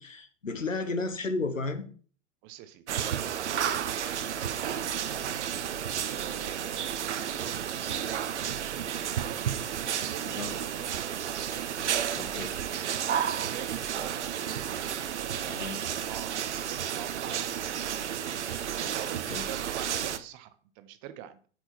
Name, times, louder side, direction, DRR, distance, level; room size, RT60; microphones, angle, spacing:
voice 1, 0.0-1.8 10.2-10.5 12.2-12.5 15.5-15.8 19.3-19.5, left 3 dB, 90° left, 9 dB, 1.2 m, -33 dB
voice 2, 2.4-4.1 4.3-9.5 10.0-11.2 11.5-12.8 13.3-14.6 15.1-18.2 18.7-21.5, right 11 dB, 30° right, 12 dB, 0.9 m, -47 dB
sound 1, 2.9-20.2, right 9 dB, 65° right, 0.8 m, -32 dB
7.9 x 6.2 x 4.4 m, 0.42 s
figure-of-eight pair, 110°, 38 cm